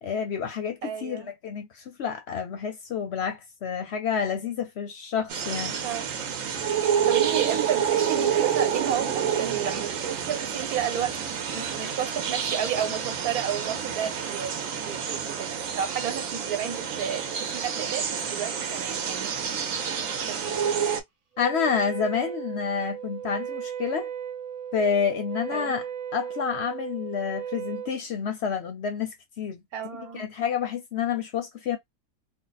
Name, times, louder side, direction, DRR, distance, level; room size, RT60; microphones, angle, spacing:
voice 1, 0.0-5.7 21.4-24.1 24.7-25.9 26.1-29.6 30.1-31.8, left 7 dB, 60° left, 0.7 m, -29 dB
voice 2, 0.8-1.3 5.8-6.1 7.0-11.2 11.5-14.6 14.9-19.4 20.2-20.4 25.5-25.7 29.7-30.3, right 9 dB, 90° right, 1.3 m, -32 dB
sound 1, 5.3-21.0, right 7 dB, 65° right, 1.1 m, -28 dB
Wind instrument woodwind instrument, 21.3-28.0, right 8 dB, 50° right, 0.4 m, -36 dB
2.7 x 2.1 x 3.9 m
omnidirectional pair, 1.5 m